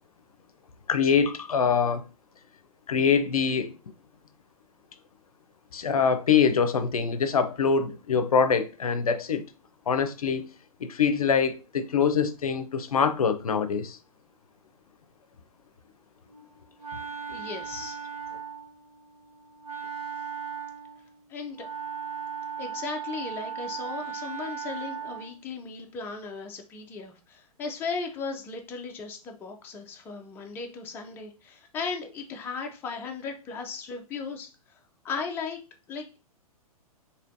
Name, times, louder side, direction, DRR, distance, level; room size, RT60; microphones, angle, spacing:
voice 1, 0.9-2.0 2.9-3.7 5.7-9.5 9.9-10.4 10.8-14.0, left 6 dB, 70° left, 0.5 m, -24 dB
Wind instrument woodwind instrument, 16.3-25.4, right 7 dB, 80° right, 1.1 m, -38 dB
voice 2, 17.3-18.0 21.3-21.7 22.6-35.6 35.9-36.2, left 4 dB, 10° left, 0.4 m, -36 dB
3.1 x 2.8 x 2.7 m
figure-of-eight pair, 115°, 19 cm